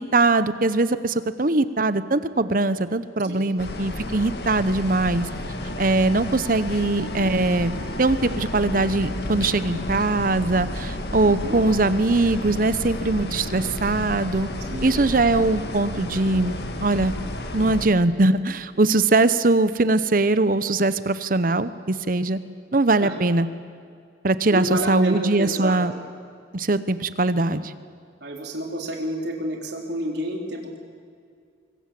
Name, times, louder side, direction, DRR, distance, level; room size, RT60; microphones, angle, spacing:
voice 1, 0.0-5.3 5.8-14.5 14.8-17.1 17.5-22.4 22.7-23.5 24.2-25.9 26.5-27.7, right 2 dB, 50° right, 13 dB, 0.9 m, -21 dB
sound 1, 3.6-17.9, left 1 dB, 65° left, 2.0 m, -31 dB
voice 2, 11.2-11.6 14.7-14.9 23.0-23.2 24.5-25.8 28.2-30.8, equal, 70° right, 1 dB, 4.0 m, -30 dB
24.5 x 23.5 x 7.7 m, 2.3 s
head